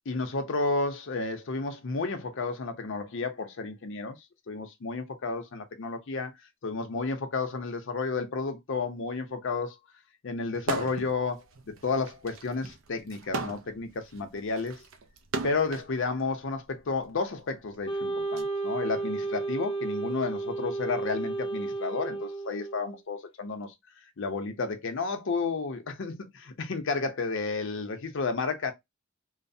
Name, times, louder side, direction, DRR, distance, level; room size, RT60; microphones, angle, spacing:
voice 1, 0.1-4.2 4.5-6.3 6.6-9.8 10.2-14.8 15.4-23.7 24.2-28.7, left 4 dB, 65° left, 0.6 m, -32 dB
sound 1, 10.6-11.1 11.5-15.9 16.8-18.4, right 3 dB, 70° right, 0.5 m, -36 dB
Wind instrument woodwind instrument, 17.9-23.0, right 3 dB, 25° left, 0.5 m, -32 dB
3.1 x 2.0 x 2.6 m
head